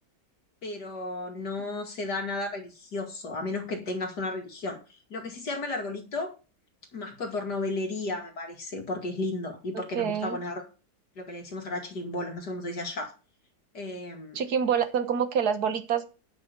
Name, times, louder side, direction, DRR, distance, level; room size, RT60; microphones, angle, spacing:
voice 1, 0.6-6.4 6.9-10.6 11.2-13.1 13.7-14.4, left 2 dB, 65° left, 2 dB, 2.8 m, -34 dB
voice 2, 9.7-10.4 14.4-16.0, right 7 dB, 60° right, 9 dB, 1.7 m, -27 dB
9.6 x 6.1 x 6.7 m, 0.33 s
omnidirectional pair, 2.0 m